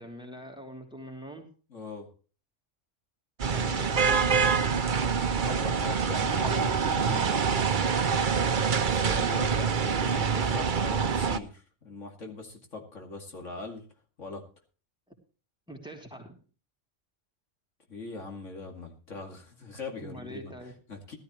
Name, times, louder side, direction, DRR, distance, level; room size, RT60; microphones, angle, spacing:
voice 1, 0.0-1.5 3.5-5.2 15.7-16.3 20.0-20.7, equal, 5° right, 2 dB, 2.9 m, -43 dB
voice 2, 1.7-2.1 5.4-7.4 9.0-13.8 14.2-14.4 17.9-20.5 20.9-21.2, left 3 dB, 85° left, 3 dB, 2.8 m, -41 dB
sound 1, 3.4-11.4, right 6 dB, 45° right, 0.9 m, -26 dB
17.0 x 13.0 x 3.1 m, 0.37 s
omnidirectional pair, 1.2 m